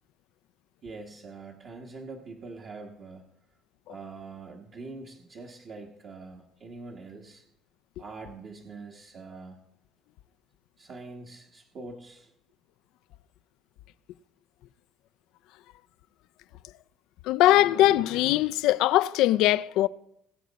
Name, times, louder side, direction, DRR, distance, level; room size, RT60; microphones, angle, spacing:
voice 1, 0.8-3.2 3.9-7.4 8.0-9.6 10.8-12.3, right 3 dB, 45° right, 1.3 m, -44 dB
voice 2, 17.3-19.9, left 14 dB, 85° left, 0.3 m, -21 dB
20.0 x 8.3 x 4.0 m
cardioid pair, 140°, 0 cm